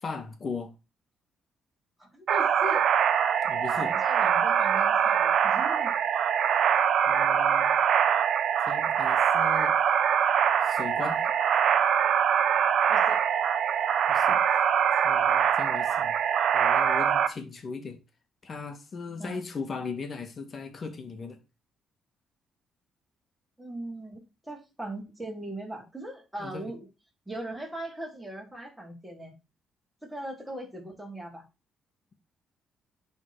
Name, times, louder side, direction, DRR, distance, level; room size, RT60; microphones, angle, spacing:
voice 1, 0.0-0.7 3.4-3.9 7.1-7.7 8.6-9.8 10.6-11.2 14.1-14.6 15.0-16.1 16.5-18.0 18.4-21.4 26.4-26.6, left 4 dB, 45° left, 2.0 m, -38 dB
voice 2, 2.0-2.9 3.7-5.9 12.9-13.2 19.2-19.4 23.6-26.9 27.3-29.3 30.0-31.4, right 1 dB, 5° right, 4.4 m, -39 dB
sound 1, 2.3-17.3, right 8 dB, 65° right, 0.8 m, -23 dB
11.0 x 4.3 x 4.8 m
cardioid pair, 90°, 0 cm